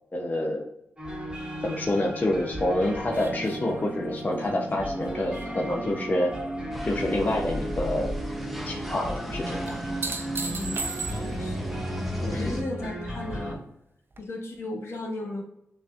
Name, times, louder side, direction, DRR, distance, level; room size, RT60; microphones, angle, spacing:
voice 1, 0.1-0.6 1.6-6.3 6.9-8.1 8.7-9.8 12.3-12.6, left 1 dB, 35° left, -1 dB, 0.8 m, -27 dB
sound 1, 1.0-13.6, equal, 15° right, 1.5 m, -35 dB
sound 2, 3.1-6.6 7.0-7.6 9.7-11.6 14.1-14.2, right 4 dB, 50° right, 0.6 m, -38 dB
sound 3, 6.7-12.6, equal, ahead, 0.7 m, -36 dB
voice 2, 10.5-10.8 11.1-11.7 12.2-13.6 14.2-15.4, left 1 dB, 60° left, 0 dB, 1.3 m, -35 dB
6.8 x 2.6 x 2.4 m, 0.80 s
cardioid pair, 55°, 5 cm